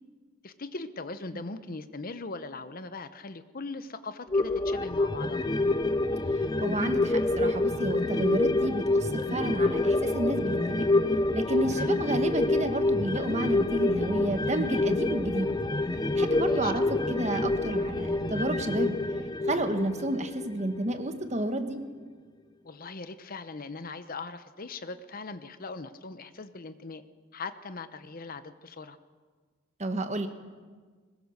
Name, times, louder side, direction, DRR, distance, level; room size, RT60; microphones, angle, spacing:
voice 1, 0.4-5.5 11.7-11.9 16.4-16.7 22.6-27.0 27.3-29.0, left 3 dB, 45° left, 11 dB, 0.9 m, -40 dB
sound 1, 4.3-21.1 21.4-21.5, left 2 dB, 20° left, 0.6 m, -27 dB
voice 2, 6.4-10.9 11.3-15.5 16.1-19.0 19.5-21.8 29.8-30.3, right 1 dB, 35° right, 8 dB, 1.4 m, -31 dB
21.5 x 20.5 x 6.6 m, 1.5 s
head